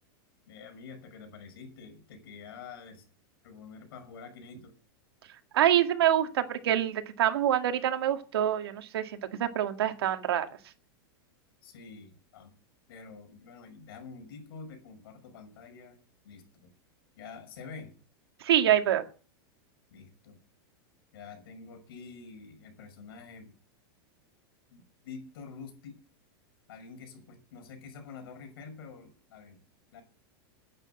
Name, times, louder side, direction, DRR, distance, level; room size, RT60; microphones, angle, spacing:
voice 1, 0.5-3.1 3.4-4.7 11.6-12.5 12.9-16.0 16.2-16.7 17.2-17.9 19.9-20.4 21.1-23.6 24.7-26.0 26.7-29.6 29.9-30.0, left 5 dB, 70° left, 6 dB, 6.1 m, -47 dB
voice 2, 5.5-10.5 18.4-19.0, right 11 dB, 90° right, 6 dB, 2.0 m, -26 dB
10.5 x 9.3 x 7.7 m, 0.39 s
supercardioid pair, 160°, 13 cm